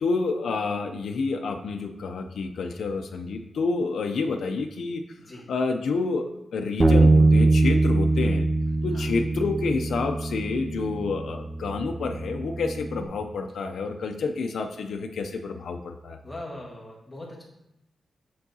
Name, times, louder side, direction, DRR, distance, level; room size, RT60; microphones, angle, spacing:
voice 1, 0.0-5.0 5.5-6.3 6.5-8.5 8.8-16.2, left 4 dB, 70° left, 3 dB, 0.5 m, -29 dB
Bass guitar, 6.8-13.1, right 2 dB, 15° right, 0.3 m, -22 dB
voice 2, 16.2-17.4, left 1 dB, 10° left, -4 dB, 1.5 m, -40 dB
8.5 x 4.6 x 2.7 m, 0.87 s
wide cardioid pair, 155°, 0 cm